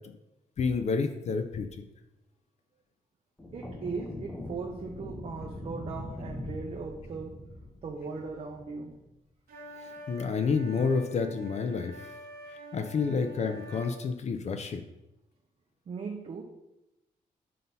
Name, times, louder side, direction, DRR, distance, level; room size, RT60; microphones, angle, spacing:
voice 1, 0.6-1.7 9.8-12.1 12.7-14.8, left 5 dB, 50° left, 7 dB, 0.4 m, -29 dB
sound 1, 3.4-9.0, left 1 dB, 10° left, 0.7 m, -42 dB
voice 2, 3.5-7.4 7.8-8.9 15.9-16.4, right 4 dB, 45° right, 1 dB, 0.6 m, -38 dB
sound 2, 9.5-14.0, equal, 80° right, 1.0 m, -46 dB
7.6 x 2.7 x 5.3 m, 0.93 s
wide cardioid pair, 150°, 15 cm